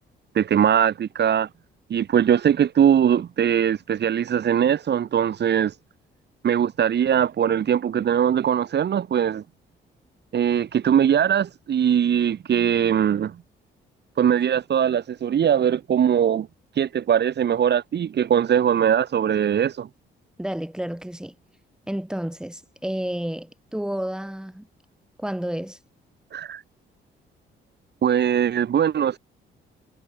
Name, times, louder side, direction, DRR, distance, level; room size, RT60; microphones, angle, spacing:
voice 1, 0.3-1.5 1.9-5.7 6.4-9.4 10.3-13.4 14.2-16.5 16.8-19.9 26.3-26.6 28.0-29.2, right 9 dB, 60° right, 3.9 m, -21 dB
voice 2, 20.4-21.4 21.9-24.7 25.2-25.8, right 1 dB, 5° right, 5.4 m, -30 dB
cardioid pair, 90°, 20 cm